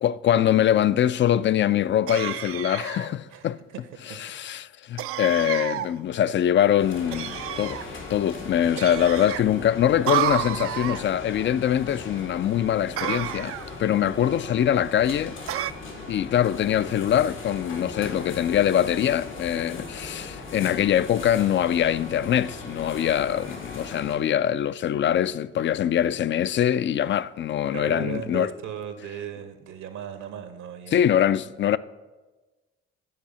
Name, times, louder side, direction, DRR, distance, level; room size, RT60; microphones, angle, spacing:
voice 1, 0.0-3.6 4.2-7.8 8.1-15.4 16.1-28.5 30.9-31.8, left 10 dB, 40° left, 0.4 m, -23 dB
sound 1, 2.1-3.1 5.0-5.9 7.1-7.9 8.8-9.4 10.1-11.0 13.0-13.7 15.5-15.7, right 12 dB, 50° right, 0.4 m, -30 dB
voice 2, 3.3-4.2 27.7-31.1, right 9 dB, 70° right, 1.1 m, -37 dB
sound 2, 6.8-24.1, left 3 dB, 90° left, 2.2 m, -39 dB
9.6 x 4.7 x 6.9 m
hypercardioid pair, 50°, 30 cm